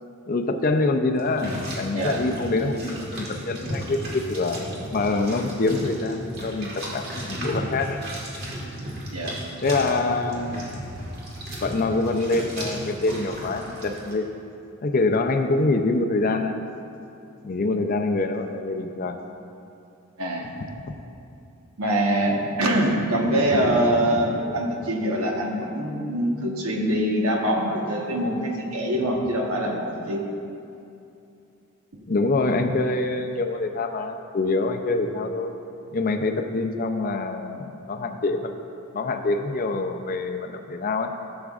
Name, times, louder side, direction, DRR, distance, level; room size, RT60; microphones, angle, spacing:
voice 1, 0.3-4.6 4.9-8.0 9.6-10.8 11.6-14.3 14.8-16.6 17.4-19.2 32.1-35.6 35.9-38.6 38.9-41.1, left 3 dB, 40° left, 5 dB, 0.5 m, -25 dB
sound 1, 1.2-14.1, right 1 dB, 45° right, 1.7 m, -34 dB
voice 2, 20.2-20.5 21.8-30.2 32.5-32.6, right 1 dB, 80° right, 0 dB, 1.2 m, -24 dB
15.5 x 7.2 x 2.4 m, 2.7 s
head